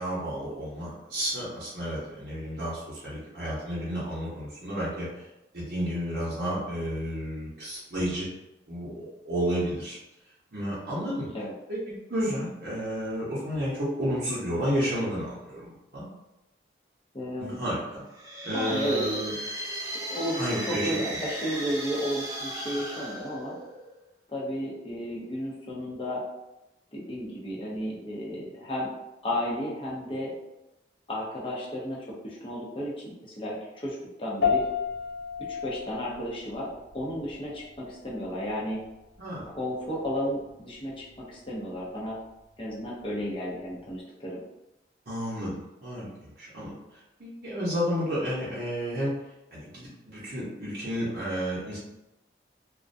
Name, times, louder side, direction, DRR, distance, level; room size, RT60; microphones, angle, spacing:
voice 1, 0.0-5.3 5.5-8.3 8.7-10.0 10.5-11.3 11.7-16.1 17.4-17.8 18.4-19.3 20.4-21.2 39.2-39.5 45.1-49.1 49.5-51.8, equal, 60° right, -8 dB, 0.7 m, -31 dB
voice 2, 17.1-17.6 18.5-19.0 20.1-23.5 24.3-26.2 26.9-28.9 29.2-30.3 31.1-34.6 35.5-36.7 36.9-38.8 39.4-42.2 42.6-44.4, equal, 30° left, -5 dB, 0.6 m, -33 dB
sound 1, 18.1-24.0, right 1 dB, 20° right, 0.4 m, -36 dB
sound 2, 34.4-44.0, left 6 dB, 85° left, 0.5 m, -35 dB
2.3 x 2.1 x 2.5 m, 0.93 s
head